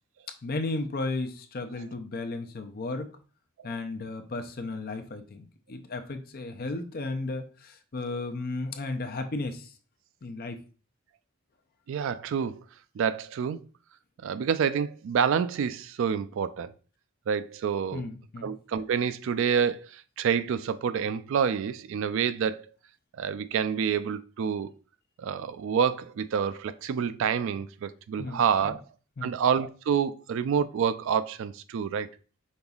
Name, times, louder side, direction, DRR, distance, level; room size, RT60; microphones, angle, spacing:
voice 1, 0.4-3.1 3.6-9.7 10.2-10.6 17.9-18.5 28.2-28.8 29.2-29.4, left 2 dB, 45° left, 0.5 m, -34 dB
voice 2, 11.9-12.6 13.0-13.6 14.2-16.7 17.3-18.1 18.4-22.6 23.2-24.7 25.2-28.8 29.2-32.1, right 7 dB, 60° right, 0.3 m, -28 dB
5.4 x 3.9 x 2.3 m
head